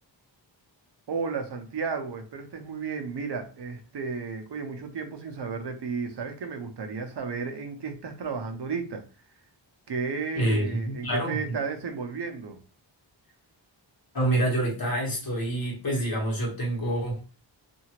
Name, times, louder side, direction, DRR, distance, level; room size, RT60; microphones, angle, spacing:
voice 1, 1.1-9.0 9.9-12.6, right 5 dB, 65° right, 0.8 m, -33 dB
voice 2, 10.3-11.5 14.1-17.2, right 1 dB, 50° left, 1.5 m, -27 dB
2.8 x 2.7 x 2.9 m
wide cardioid pair, 120°, 45 cm